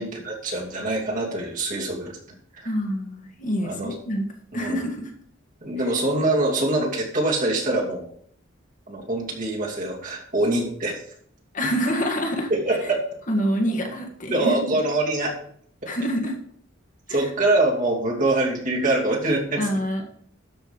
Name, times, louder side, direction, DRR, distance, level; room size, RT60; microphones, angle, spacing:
voice 1, 0.0-2.2 2.5-2.7 3.6-3.9 4.6-4.8 5.6-8.1 8.9-11.0 12.5-13.0 14.3-15.3 17.1-19.8, right 2 dB, 40° right, -2 dB, 2.7 m, -24 dB
voice 2, 2.7-4.3 4.5-5.1 11.5-12.5 13.3-14.7 15.9-16.4 17.1-17.2 19.6-20.1, equal, 40° left, 1 dB, 1.8 m, -26 dB
12.5 x 5.3 x 5.2 m, 0.62 s
head